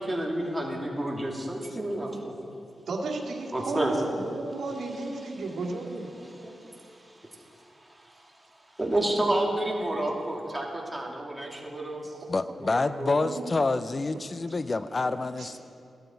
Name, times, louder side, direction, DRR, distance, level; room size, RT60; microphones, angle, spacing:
voice 1, 0.0-2.1 3.5-4.0 5.2-7.4 7.9-8.2 8.7-12.1 12.6-13.2, right 1 dB, 10° right, -2 dB, 2.7 m, -31 dB
voice 2, 2.9-6.1 13.2-13.4, right 3 dB, 80° right, 0 dB, 2.0 m, -33 dB
voice 3, 12.3-15.6, left 3 dB, 40° left, 13 dB, 0.4 m, -28 dB
16.5 x 12.5 x 4.6 m, 2.4 s
cardioid pair, 70°, 0 cm